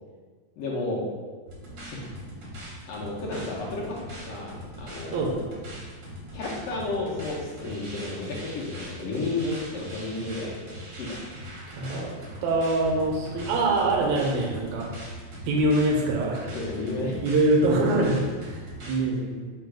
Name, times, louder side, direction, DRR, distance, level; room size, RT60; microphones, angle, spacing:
voice 1, 0.6-1.0 2.9-4.0 4.3-5.5 6.3-10.6 11.0-11.1 16.5-17.2, left 2 dB, 75° left, -5 dB, 1.5 m, -32 dB
sound 1, 1.5-19.0, equal, 60° right, 1.1 m, -40 dB
voice 2, 11.7-12.1 12.4-14.9 15.5-16.5 17.2-19.4, right 2 dB, 75° right, -1 dB, 1.8 m, -24 dB
4.6 x 2.2 x 4.6 m, 1.4 s
omnidirectional pair, 3.4 m